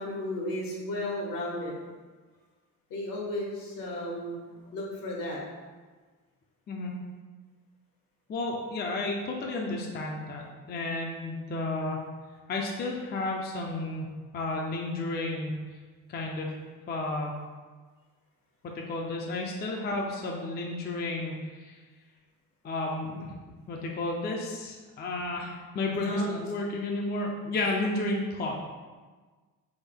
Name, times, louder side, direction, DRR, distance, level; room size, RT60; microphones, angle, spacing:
voice 1, 0.0-1.8 2.9-5.4 26.0-26.3, left 1 dB, 70° left, -3 dB, 1.1 m, -34 dB
voice 2, 8.3-12.0 12.5-14.1 14.3-15.6 16.1-16.6 16.9-17.3 18.6-21.8 22.6-23.3 23.7-28.6, left 2 dB, 30° left, -1 dB, 0.4 m, -32 dB
3.5 x 2.1 x 3.4 m, 1.4 s
cardioid pair, 85°, 36 cm